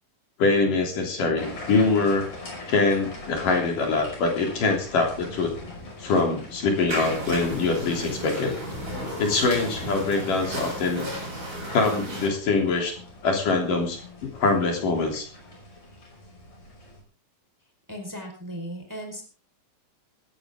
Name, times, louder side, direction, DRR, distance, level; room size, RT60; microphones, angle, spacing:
voice 1, 0.4-2.3 2.7-5.5 6.0-8.5 9.2-11.1 11.7-13.0 13.2-15.3, left 3 dB, 65° left, 2 dB, 4.8 m, -24 dB
sound 1, 1.4-17.0, left 2 dB, 50° left, 6.8 m, -42 dB
sound 2, 6.9-12.3, equal, 30° right, 8.6 m, -34 dB
voice 2, 17.9-19.2, equal, 5° right, 2 dB, 4.3 m, -36 dB
18.0 x 15.5 x 3.7 m, 0.37 s
omnidirectional pair, 4.1 m